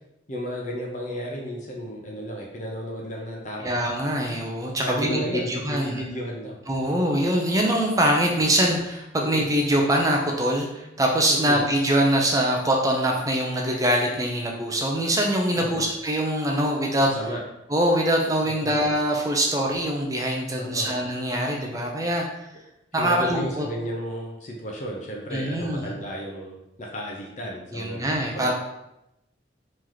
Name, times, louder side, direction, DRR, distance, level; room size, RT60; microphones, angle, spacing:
voice 1, 0.3-3.7 4.8-6.6 9.2-9.4 11.3-11.6 15.6-15.8 17.1-17.4 18.4-18.7 20.5-20.9 22.9-28.5, equal, 40° left, -2 dB, 0.6 m, -33 dB
voice 2, 3.6-6.1 6.7-17.1 17.7-22.3 22.9-23.7 25.3-25.9 27.7-28.5, right 1 dB, 20° right, 0 dB, 0.5 m, -23 dB
3.1 x 2.9 x 3.8 m, 0.87 s
head